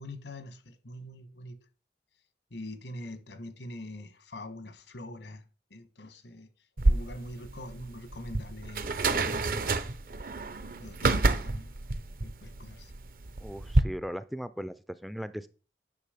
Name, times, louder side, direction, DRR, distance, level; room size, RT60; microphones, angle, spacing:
voice 1, 0.0-1.6 2.5-5.4 5.7-6.5 6.8-9.7 10.8-11.7 12.2-12.9, left 1 dB, 90° left, 1.4 m, -43 dB
sound 1, 6.8-13.8, right 2 dB, 50° right, 0.6 m, -28 dB
voice 2, 13.4-15.5, equal, ahead, 0.3 m, -38 dB
9.5 x 6.1 x 5.1 m
head